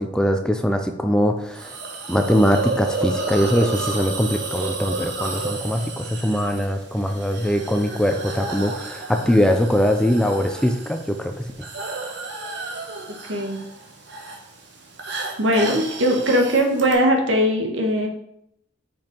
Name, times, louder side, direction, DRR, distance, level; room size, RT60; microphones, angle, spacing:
voice 1, 0.0-1.7 2.1-11.5, equal, 5° left, 5 dB, 0.4 m, -21 dB
Hiss, 1.5-16.9, right 3 dB, 60° right, 1.1 m, -32 dB
voice 2, 13.1-13.6 15.4-18.1, equal, 80° right, 3 dB, 1.2 m, -20 dB
5.3 x 5.2 x 4.5 m, 0.76 s
head